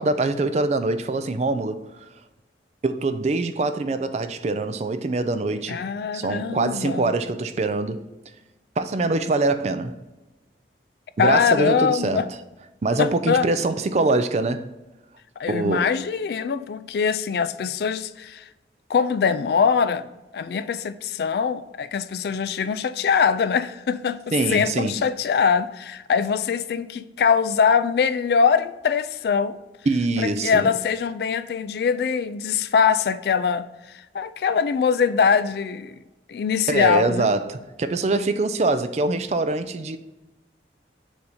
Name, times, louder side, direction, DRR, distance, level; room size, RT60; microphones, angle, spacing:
voice 1, 0.0-2.0 2.8-5.8 6.1-8.0 8.8-10.0 11.2-12.3 12.8-14.7 15.5-16.0 24.3-24.9 29.9-30.7 36.7-40.0, right 3 dB, 40° right, 0.4 m, -24 dB
voice 2, 5.7-7.1 11.2-12.3 13.0-13.5 15.4-18.5 18.9-29.6 30.2-33.7 34.1-36.0 36.3-37.3, left 6 dB, 60° left, 0.3 m, -22 dB
7.0 x 2.7 x 4.9 m
head